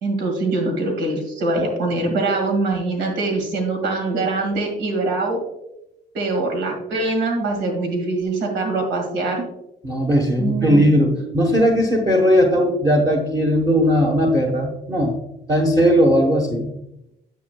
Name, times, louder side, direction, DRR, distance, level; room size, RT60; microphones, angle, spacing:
voice 1, 0.0-5.4 6.1-9.4 10.4-10.9, right 2 dB, 85° right, 2 dB, 2.0 m, -23 dB
voice 2, 9.8-15.1 15.5-16.7, equal, 25° right, 0 dB, 1.0 m, -18 dB
9.4 x 7.4 x 2.2 m, 0.88 s
cardioid pair, 110°, 17 cm